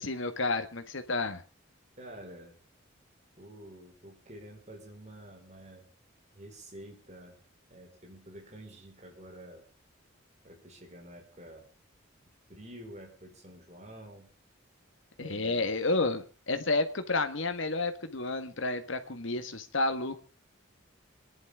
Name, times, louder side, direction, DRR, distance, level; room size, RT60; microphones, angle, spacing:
voice 1, 0.0-1.4 15.2-20.2, left 3 dB, 70° left, 8 dB, 1.7 m, -31 dB
voice 2, 2.0-2.6 3.4-5.9 6.3-7.4 7.7-9.6 10.4-11.6 12.5-14.3 15.2-15.7, right 1 dB, 35° right, 0 dB, 5.0 m, -49 dB
27.0 x 11.0 x 3.7 m, 0.35 s
head